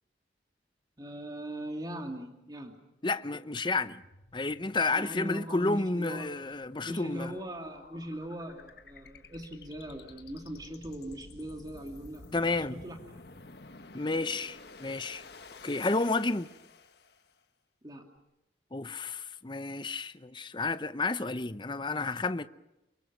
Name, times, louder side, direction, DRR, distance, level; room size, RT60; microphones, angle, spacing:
voice 1, 1.0-2.8 4.9-6.3 6.8-12.3 12.6-13.0 17.8-18.0, right 1 dB, 20° right, 2.6 m, -40 dB
voice 2, 3.0-4.0 4.3-7.3 12.3-12.8 13.9-15.2 15.6-16.5 18.7-22.5, left 3 dB, 25° left, 0.8 m, -31 dB
sound 1, 4.0-17.4, left 3 dB, 60° left, 1.5 m, -52 dB
28.5 x 23.0 x 6.2 m
head